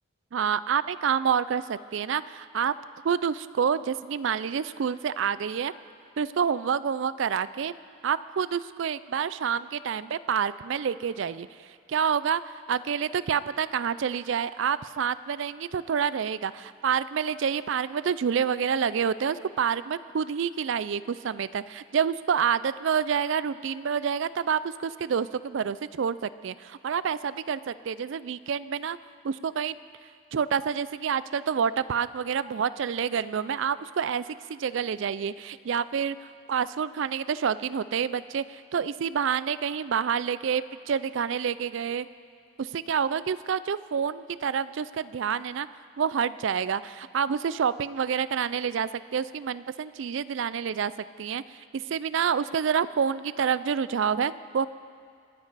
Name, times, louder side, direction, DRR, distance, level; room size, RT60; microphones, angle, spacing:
voice 1, 0.3-2.8 3.0-5.7 6.2-7.7 8.0-11.5 11.9-12.4 12.7-29.0 29.2-29.8 30.3-36.2 36.5-42.1 42.6-45.7 46.0-50.9 51.2-51.4 51.7-54.7, right 7 dB, 60° right, 16 dB, 0.4 m, -28 dB
27.0 x 9.7 x 4.1 m, 2.2 s
head